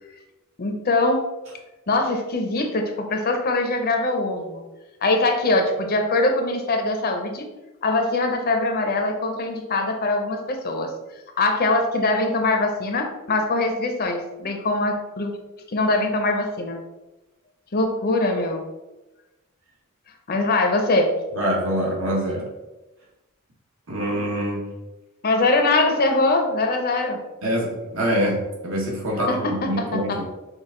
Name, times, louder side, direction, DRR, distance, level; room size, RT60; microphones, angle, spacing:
voice 1, 0.6-1.2 1.9-4.6 5.0-7.5 7.8-10.9 11.4-15.3 15.7-16.8 17.7-18.6 20.3-21.1 25.2-27.2 29.3-30.2, left 2 dB, 45° left, 4 dB, 0.7 m, -22 dB
voice 2, 21.3-22.5 23.9-24.7 27.4-30.2, equal, 70° right, -3 dB, 1.5 m, -25 dB
6.2 x 2.3 x 3.7 m, 1.0 s
head